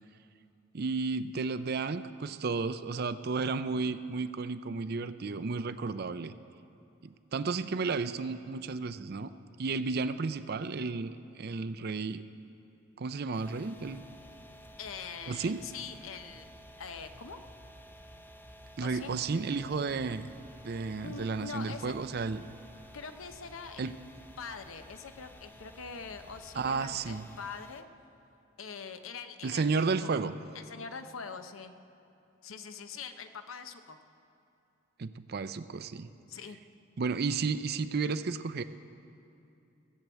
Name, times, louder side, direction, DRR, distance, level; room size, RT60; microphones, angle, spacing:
voice 1, 0.7-6.3 7.0-9.3 9.6-12.2 13.0-14.0 15.3-15.6 18.8-20.3 20.6-22.4 23.8-23.9 26.5-27.3 29.4-30.4 35.0-36.1 37.0-38.6, right 4 dB, 50° right, 12 dB, 0.5 m, -32 dB
sound 1, 13.3-27.8, equal, 10° left, 0.5 m, -54 dB
sound 2, 13.8-27.2, equal, 70° right, 1.7 m, -57 dB
voice 2, 14.8-16.5 16.8-17.4 18.8-19.1 21.0-22.0 22.9-23.9 24.4-27.9 28.6-30.2 30.5-31.7 32.4-34.0 36.3-36.6, left 5 dB, 75° left, 8 dB, 0.8 m, -43 dB
17.0 x 7.6 x 8.1 m, 2.8 s
head